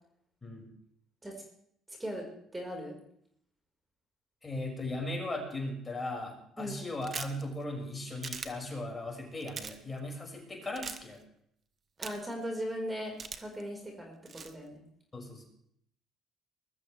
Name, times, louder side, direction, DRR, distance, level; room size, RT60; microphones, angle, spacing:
voice 1, 1.9-2.3 2.5-2.9 6.6-6.9 12.0-14.8, equal, 15° right, 1 dB, 4.9 m, -38 dB
voice 2, 4.4-11.2 15.1-15.4, left 1 dB, 25° left, 1 dB, 6.0 m, -38 dB
sound 1, 7.0-7.4 8.2-8.5 9.4-9.8 10.8-11.0 12.0-12.3 13.2-13.6 14.3-14.5, right 6 dB, 45° right, 1.3 m, -40 dB
21.0 x 13.5 x 3.4 m, 0.70 s
supercardioid pair, 75°, 0 cm